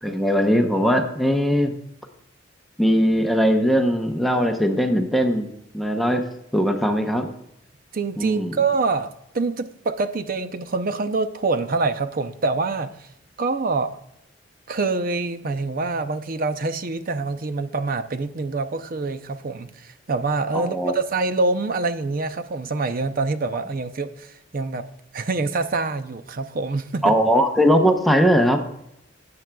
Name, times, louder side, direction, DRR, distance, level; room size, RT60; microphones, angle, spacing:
voice 1, 0.0-1.7 2.8-5.5 5.7-6.2 6.5-7.3 8.2-8.6 20.5-20.9 27.0-28.6, equal, ahead, 4 dB, 0.8 m, -20 dB
voice 2, 7.9-13.1 13.4-14.0 14.7-24.9 25.1-27.1, right 3 dB, 50° right, 10 dB, 0.6 m, -25 dB
12.5 x 8.7 x 2.3 m, 0.79 s
head